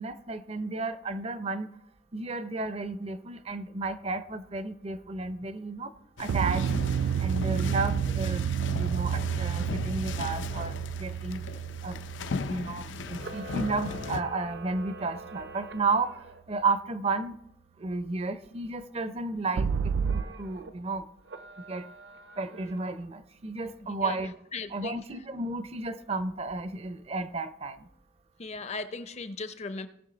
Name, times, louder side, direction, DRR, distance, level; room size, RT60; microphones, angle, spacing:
voice 1, 0.0-1.7 2.1-5.9 6.2-6.7 7.2-11.4 11.8-12.0 12.3-17.4 17.8-21.1 21.6-21.8 22.4-24.4 24.7-27.8, right 3 dB, 35° right, 12 dB, 0.5 m, -33 dB
sound 1, 6.2-14.2, left 4 dB, 85° left, 0.5 m, -37 dB
sound 2, 6.3-14.6 19.6-20.2, right 8 dB, 85° right, 0.3 m, -30 dB
Camera, 13.1-16.4 20.0-20.7 21.2-23.1, right 3 dB, 70° right, 0.9 m, -45 dB
voice 2, 24.5-25.0 28.4-29.9, left 3 dB, 35° left, 12 dB, 0.5 m, -37 dB
18.0 x 6.2 x 3.8 m, 0.78 s
head